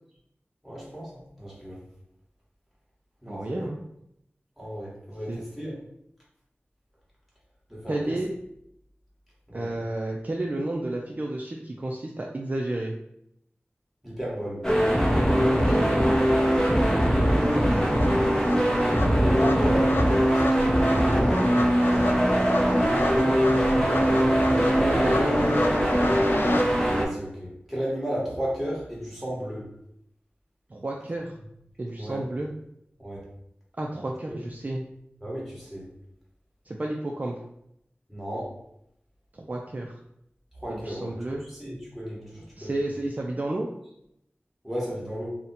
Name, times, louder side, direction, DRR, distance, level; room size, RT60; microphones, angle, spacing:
voice 1, 0.6-1.8 3.2-3.7 4.6-5.8 7.7-8.2 9.5-9.8 14.0-14.6 19.2-22.5 27.0-29.7 32.0-32.2 33.0-33.3 34.3-34.4 35.2-35.9 38.1-38.6 40.5-42.8 44.6-45.3, equal, 5° right, -6 dB, 1.3 m, -34 dB
voice 2, 3.3-3.8 5.3-5.4 7.9-8.3 9.5-13.0 15.3-16.1 18.6-19.2 22.9-26.2 30.7-31.3 31.8-32.5 33.8-34.9 36.7-37.3 39.3-39.9 40.7-41.4 42.6-43.7, right 1 dB, 40° right, -1 dB, 0.3 m, -32 dB
sound 1, 14.6-27.0, equal, 15° left, 0.6 m, -21 dB
sound 2, 17.0-26.6, left 2 dB, 60° left, 0.3 m, -32 dB
2.6 x 2.1 x 4.0 m, 0.78 s
wide cardioid pair, 65°, 4 cm